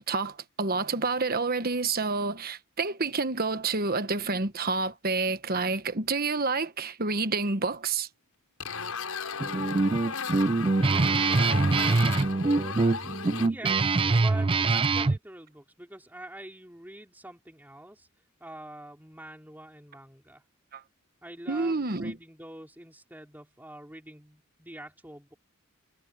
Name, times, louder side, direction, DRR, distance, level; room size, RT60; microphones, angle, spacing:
voice 1, 0.1-8.1 20.7-20.8 21.5-22.2, right 4 dB, 45° right, 1.3 m, -28 dB
sound 1, 8.6-13.5, left 5 dB, 85° left, 5.9 m, -35 dB
Guitar, 9.4-15.2, right 3 dB, 25° right, 0.4 m, -24 dB
voice 2, 10.9-12.6 13.4-18.1 18.4-20.4 21.2-25.3, right 1 dB, 10° right, 4.1 m, -45 dB
head